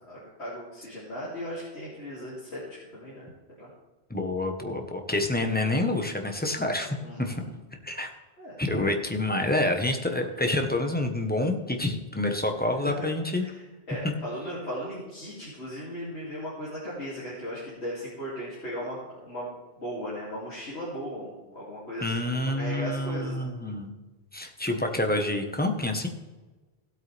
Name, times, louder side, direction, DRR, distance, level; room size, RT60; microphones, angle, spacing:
voice 1, 0.1-3.3 3.6-3.7 7.0-7.5 8.4-8.6 12.7-12.9 13.4-13.6 13.9-19.5 19.8-23.5, equal, 80° left, -8 dB, 3.2 m, -37 dB
voice 2, 4.1-7.4 7.8-8.1 8.6-13.5 22.0-23.9 24.3-26.1, left 2 dB, 10° left, 4 dB, 1.2 m, -28 dB
16.5 x 8.3 x 3.4 m, 1.2 s
omnidirectional pair, 1.1 m